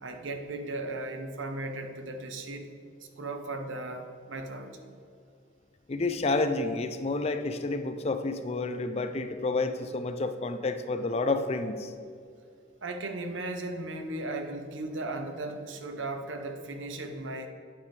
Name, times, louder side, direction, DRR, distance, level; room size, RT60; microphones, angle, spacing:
voice 1, 0.0-2.7 3.2-4.8 12.8-17.5, right 2 dB, 85° right, 6 dB, 0.8 m, -36 dB
voice 2, 5.9-11.9, left 3 dB, 35° left, 9 dB, 0.4 m, -30 dB
8.9 x 8.5 x 3.3 m, 2.3 s
head